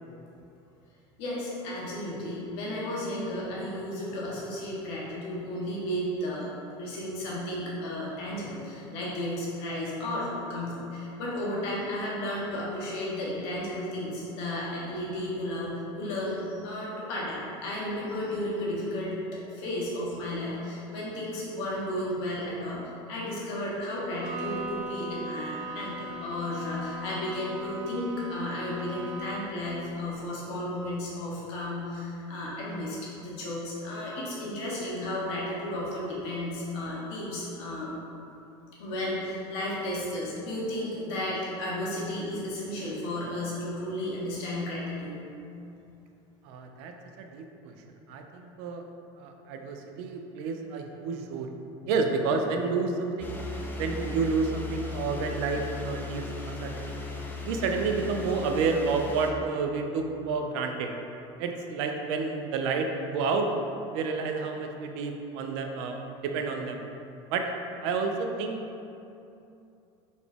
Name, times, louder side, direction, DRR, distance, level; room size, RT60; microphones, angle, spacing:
voice 1, 1.2-6.5 6.7-22.8 23.1-37.9 38.8-45.2, left 1 dB, 75° left, -5 dB, 1.1 m, -33 dB
Bowed string instrument, 24.1-29.6, right 1 dB, 55° right, 1.5 m, -38 dB
voice 2, 46.4-48.8 49.2-51.5 51.9-56.9 57.4-60.9 61.4-63.5 63.9-66.8 67.3-67.5 67.8-68.6, right 4 dB, 70° right, 4 dB, 0.4 m, -30 dB
sound 1, 53.2-59.3, left 3 dB, 15° left, 0.5 m, -37 dB
3.9 x 2.3 x 3.4 m, 2.7 s
supercardioid pair, 100°, 14 cm